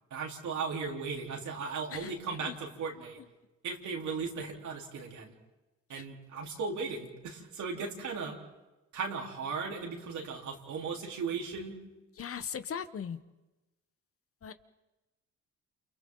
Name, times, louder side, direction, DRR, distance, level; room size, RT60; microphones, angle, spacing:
voice 1, 0.1-3.2 3.6-5.3 5.9-8.4 8.9-11.8, right 5 dB, 70° right, 0 dB, 4.1 m, -37 dB
voice 2, 12.2-13.2 14.4-14.5, left 7 dB, 50° left, 12 dB, 1.1 m, -38 dB
29.0 x 29.0 x 4.0 m, 1.1 s
cardioid pair, 90°, 30 cm